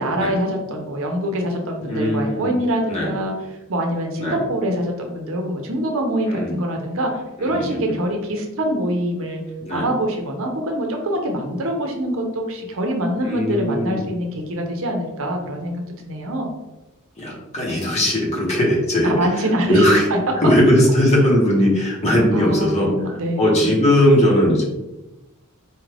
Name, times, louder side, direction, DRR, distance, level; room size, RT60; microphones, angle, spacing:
voice 1, 0.0-3.3 3.7-9.4 9.7-16.5 19.0-19.8 20.1-20.2 22.3-23.7, equal, 65° right, 2 dB, 0.7 m, -24 dB
voice 2, 1.8-2.5 2.9-3.1 4.2-4.4 6.3-6.6 7.4-8.0 9.6-9.9 13.2-14.1 17.2-20.0 20.4-24.6, left 1 dB, 30° left, -3 dB, 1.0 m, -19 dB
4.3 x 2.4 x 3.3 m, 1.0 s
head